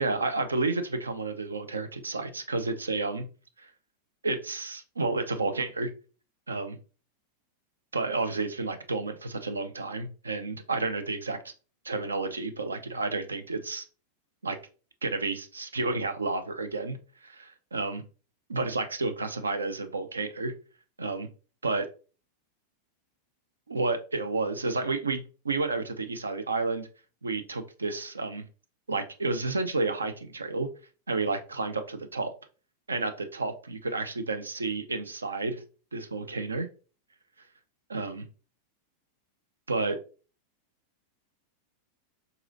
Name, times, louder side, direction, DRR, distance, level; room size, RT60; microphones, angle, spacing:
voice 1, 0.0-3.3 3.6-3.7 4.2-5.9 6.5-6.8 7.9-11.5 11.8-13.8 14.4-14.6 15.0-18.0 18.5-20.5 21.0-21.3 21.6-21.9 23.7-26.9 27.2-28.4 28.9-30.7 31.1-32.3 32.9-35.6 35.9-36.7 37.9-38.3 39.7-40.0, right 3 dB, 75° right, 8 dB, 0.5 m, -31 dB
4.8 x 3.9 x 2.6 m, 0.36 s
figure-of-eight pair, 90°, 0 cm